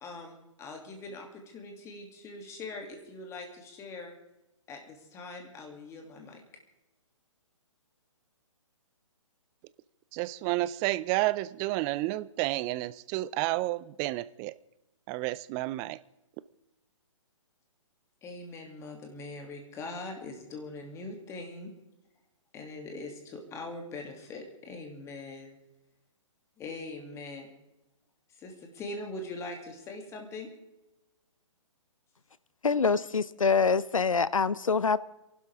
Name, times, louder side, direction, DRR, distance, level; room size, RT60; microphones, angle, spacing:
voice 1, 0.0-4.1 4.7-6.4 18.2-21.7 22.5-25.6 26.6-27.5 28.3-30.5, left 2 dB, 15° left, 3 dB, 2.6 m, -42 dB
voice 2, 10.1-14.5 15.1-16.0, right 18 dB, 20° right, 18 dB, 0.4 m, -30 dB
voice 3, 32.6-35.0, left 5 dB, 90° left, 18 dB, 0.8 m, -25 dB
27.0 x 12.0 x 3.6 m, 0.96 s
hypercardioid pair, 135°, 17 cm